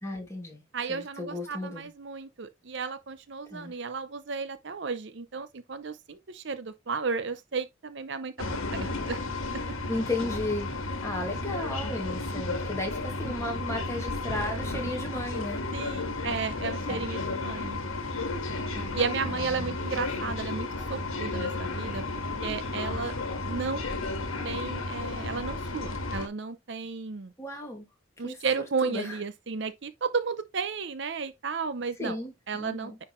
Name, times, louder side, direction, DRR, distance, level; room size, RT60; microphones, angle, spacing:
voice 1, 0.0-0.6 0.9-1.9 3.5-3.7 9.9-10.7 11.0-15.6 16.9-17.1 18.7-19.8 27.4-27.9 28.2-29.2 32.0-33.0, left 1 dB, 15° left, 2.3 m, -35 dB
voice 2, 0.7-8.3 8.7-9.2 9.5-9.6 15.7-17.8 18.9-22.0 22.4-23.1 23.5-23.9 24.4-27.3 28.2-32.2 32.5-32.9, right 5 dB, 60° right, 0.6 m, -33 dB
sound 1, 8.4-26.3, left 2 dB, 90° left, 1.6 m, -33 dB
9.9 x 4.0 x 3.1 m
head